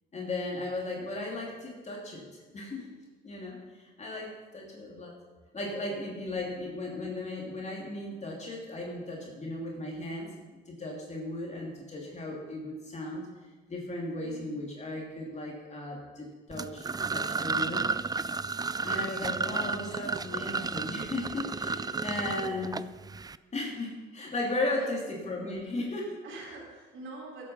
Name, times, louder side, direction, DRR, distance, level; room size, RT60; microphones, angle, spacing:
voice 1, 0.1-2.9 3.2-5.1 5.5-10.3 10.7-13.2 13.7-16.8 17.1-17.8 18.8-22.7 23.5-26.2, left 2 dB, 35° left, -2 dB, 3.0 m, -36 dB
voice 2, 6.2-6.5 14.2-14.5 19.2-19.6 22.4-22.7 24.7-24.9 26.2-27.5, right 2 dB, 80° right, -2 dB, 3.9 m, -46 dB
sound 1, 16.5-23.4, right 4 dB, 20° right, 0.4 m, -32 dB
15.0 x 8.5 x 5.6 m, 1.3 s
cardioid pair, 90°, 20 cm